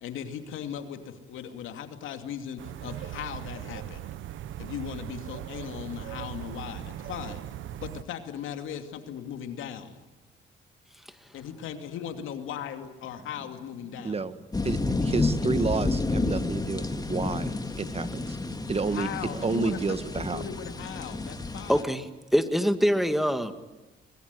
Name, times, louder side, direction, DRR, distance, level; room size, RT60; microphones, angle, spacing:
voice 1, 0.0-4.0 4.6-7.4 7.8-10.0 11.3-14.2 18.9-21.8, left 9 dB, 85° left, 7 dB, 2.7 m, -38 dB
sound 1, 2.6-8.0, right 12 dB, 80° right, 1.0 m, -39 dB
sound 2, 14.5-21.8, left 3 dB, 20° left, 2.2 m, -30 dB
voice 2, 14.6-18.4 18.7-19.1 19.4-20.4, right 4 dB, 30° right, 13 dB, 1.4 m, -30 dB
voice 3, 21.7-22.1 22.3-23.5, equal, ahead, 9 dB, 1.9 m, -24 dB
23.5 x 21.0 x 9.8 m, 1.1 s
cardioid pair, 90°, 20 cm